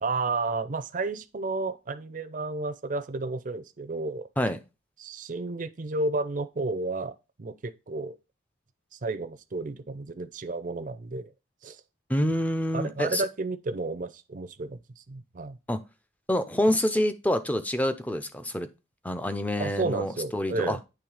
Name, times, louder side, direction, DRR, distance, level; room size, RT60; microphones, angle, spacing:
voice 1, 0.0-4.3 5.0-8.2 8.9-11.3 11.6-11.8 12.7-15.6 19.6-20.8, right 3 dB, 40° right, 0.5 m, -32 dB
voice 2, 12.1-13.2 15.7-15.8 16.3-18.7 19.0-20.8, left 1 dB, 10° left, 0.5 m, -27 dB
8.7 x 3.2 x 4.8 m
head